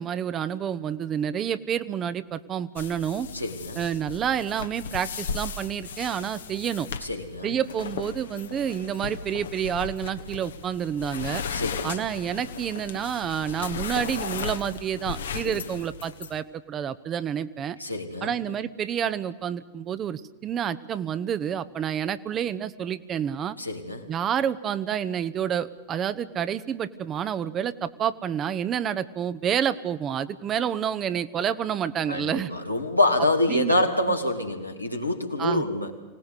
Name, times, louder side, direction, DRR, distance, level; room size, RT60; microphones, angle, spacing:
voice 1, 0.0-3.3 3.8-6.9 7.4-11.4 11.8-17.8 18.2-23.6 24.1-32.5 33.5-33.8 35.4-35.6, right 8 dB, 30° right, 13 dB, 0.9 m, -29 dB
sound 1, 2.8-16.4, left 6 dB, 65° left, 1.3 m, -36 dB
voice 2, 3.3-3.8 7.0-7.6 11.5-12.0 15.4-15.6 17.8-18.3 23.6-24.1 32.1-35.9, left 1 dB, 90° left, 2 dB, 2.4 m, -26 dB
25.0 x 18.0 x 8.3 m, 1.0 s
figure-of-eight pair, 90°, 0 cm